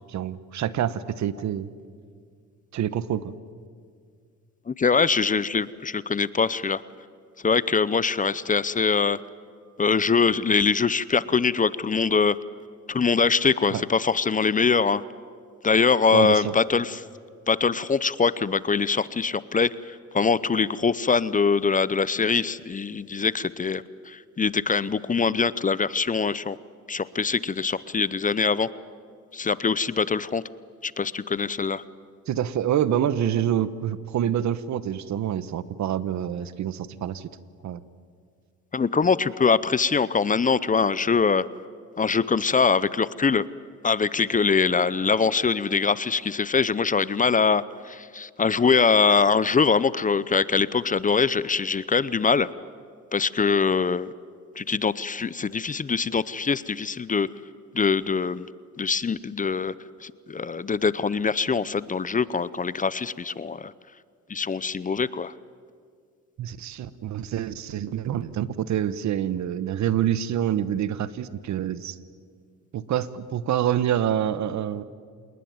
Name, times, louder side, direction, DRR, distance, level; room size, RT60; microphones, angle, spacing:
voice 1, 0.0-1.7 2.7-3.3 13.7-13.8 16.1-16.5 32.3-37.3 37.6-37.8 66.4-72.0 72.7-74.8, right 10 dB, 70° right, 16 dB, 1.1 m, -26 dB
voice 2, 4.7-6.8 7.4-9.2 9.8-12.4 12.9-15.0 15.6-17.0 17.5-19.7 20.1-26.6 26.9-28.7 29.3-30.4 30.8-31.8 38.7-41.5 42.0-43.4 43.8-52.5 53.1-54.1 54.6-57.3 57.7-58.5 58.8-59.7 60.0-63.7 64.3-65.3, left 5 dB, 25° left, 18 dB, 0.7 m, -23 dB
27.5 x 20.0 x 9.5 m, 2.1 s
cardioid pair, 90°, 30 cm